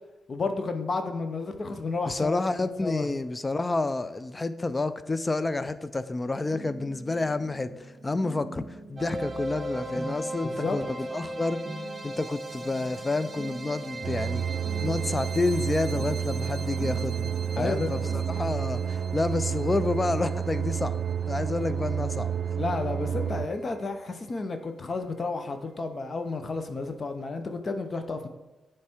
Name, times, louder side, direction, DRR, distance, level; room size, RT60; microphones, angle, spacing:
voice 1, 0.3-3.1 10.4-10.8 17.6-18.1 22.6-28.3, left 3 dB, 45° left, 7 dB, 0.8 m, -32 dB
voice 2, 2.1-11.6 12.0-14.5 14.8-22.3, left 2 dB, 25° left, 14 dB, 0.4 m, -29 dB
sound 1, 6.3-18.6, right 2 dB, 30° right, 1.4 m, -44 dB
sound 2, 9.0-23.9, right 2 dB, 45° right, 0.9 m, -40 dB
sound 3, 14.0-23.5, right 8 dB, 65° right, 0.3 m, -30 dB
9.4 x 3.3 x 4.4 m, 1.1 s
supercardioid pair, 50°, 0 cm